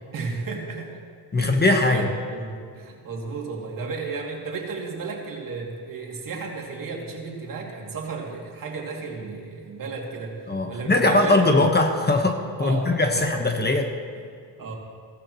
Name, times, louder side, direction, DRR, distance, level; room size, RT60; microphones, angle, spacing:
voice 1, 0.1-1.0 1.4-11.7 12.6-12.9 13.2-13.3 14.6-14.8, right 4 dB, 55° right, -1 dB, 2.5 m, -33 dB
voice 2, 1.3-2.1 10.5-13.9, left 2 dB, 25° left, 4 dB, 1.2 m, -20 dB
16.0 x 14.0 x 3.0 m, 2.2 s
cardioid pair, 85°, 41 cm